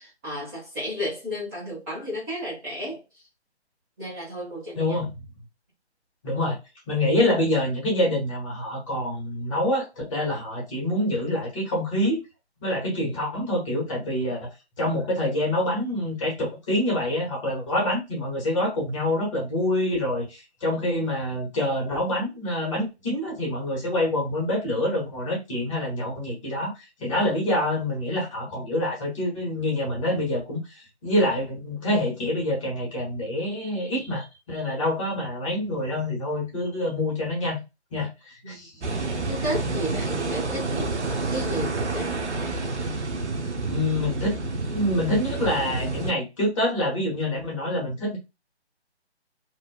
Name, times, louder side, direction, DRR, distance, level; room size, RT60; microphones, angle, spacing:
voice 1, 0.0-3.2 4.0-5.1 38.4-38.6 39.3-40.9 41.3-42.1, equal, 15° right, 1.1 m, -33 dB
voice 2, 4.8-5.1 6.2-6.6 6.9-12.2 12.6-14.5 14.8-26.7 27.0-30.6 31.0-37.6 37.9-38.1 38.4-38.7 43.7-44.4 44.7-48.2, left 1 dB, 30° left, 1.3 m, -26 dB
sound 1, 38.8-46.1, right 3 dB, 85° right, 0.7 m, -29 dB
2.8 x 2.7 x 2.2 m
figure-of-eight pair, 145°, 34 cm